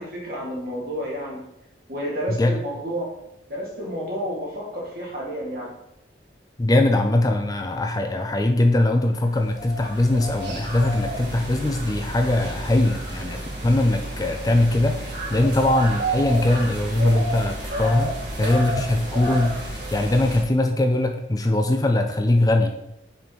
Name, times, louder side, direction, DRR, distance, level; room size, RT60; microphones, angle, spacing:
voice 1, 0.0-1.4 1.9-3.1 3.5-5.7, equal, 55° right, -3 dB, 2.1 m, -30 dB
voice 2, 6.6-23.0, left 1 dB, 20° left, 5 dB, 0.4 m, -21 dB
sound 1, 9.2-20.4, right 1 dB, 70° right, 2.2 m, -31 dB
5.3 x 4.4 x 5.5 m, 0.85 s
head